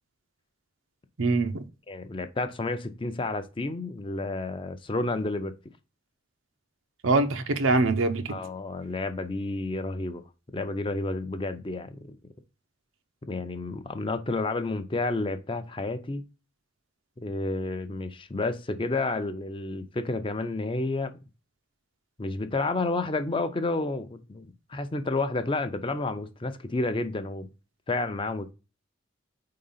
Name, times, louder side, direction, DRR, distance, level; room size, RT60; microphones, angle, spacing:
voice 1, 1.2-1.7 7.0-8.4, right 3 dB, 90° right, 0.7 m, -24 dB
voice 2, 1.9-5.5 8.3-10.2 10.5-12.2 13.2-16.2 17.2-21.1 22.2-27.5 27.9-28.5, left 2 dB, 25° left, 0.5 m, -30 dB
4.7 x 3.8 x 5.5 m
head